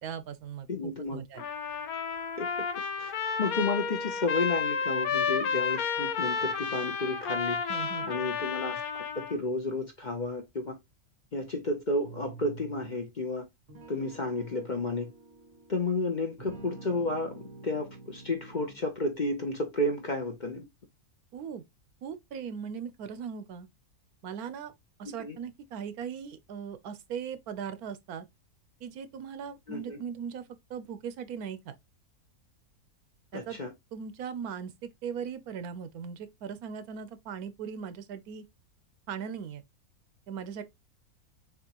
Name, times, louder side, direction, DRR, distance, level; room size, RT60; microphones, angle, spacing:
voice 1, 0.0-1.4 7.7-8.1 21.3-21.6 22.0-23.7 24.2-24.7 25.0-28.3 28.8-31.8 33.3-33.6 33.9-38.4 39.1-39.6 40.3-40.6, right 7 dB, 80° right, 1.2 m, -39 dB
voice 2, 0.7-1.2 2.4-2.5 3.0-3.1 3.4-7.6 8.1-8.8 9.2-10.8 11.3-13.5 13.9-15.1 15.7-20.7 25.2-25.4 29.7-30.0 33.3-33.7, left 2 dB, 40° left, 0.7 m, -32 dB
Trumpet, 1.4-9.4, left 6 dB, 80° left, 1.3 m, -31 dB
sound 1, 12.0-13.1 13.7-15.9 16.4-19.0, right 3 dB, 55° right, 2.1 m, -48 dB
6.8 x 2.5 x 2.9 m
omnidirectional pair, 1.6 m